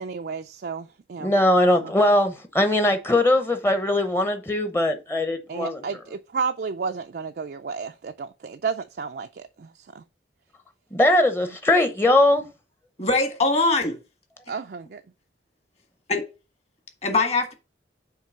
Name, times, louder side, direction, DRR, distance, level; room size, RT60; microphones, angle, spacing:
voice 1, 0.0-1.3 1.8-1.9 5.5-10.0 14.5-15.0, right 5 dB, 55° right, 0.4 m, -32 dB
voice 2, 1.2-5.8 10.9-12.4, left 1 dB, 15° left, 0.8 m, -20 dB
voice 3, 13.0-14.0 16.1-16.2 17.0-17.5, left 3 dB, 35° left, 1.6 m, -22 dB
7.3 x 3.2 x 5.8 m
head